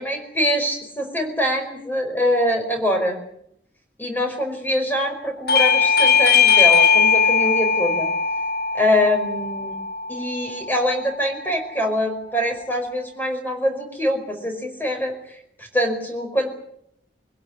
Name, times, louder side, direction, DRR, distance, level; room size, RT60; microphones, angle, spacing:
voice 1, 0.0-3.2 4.0-8.1 8.7-9.8 10.1-15.1 15.6-16.5, equal, 10° left, 4 dB, 5.0 m, -24 dB
Bell / Doorbell, 5.5-10.7, left 6 dB, 55° left, 1.4 m, -19 dB
24.0 x 16.5 x 9.8 m, 0.74 s
head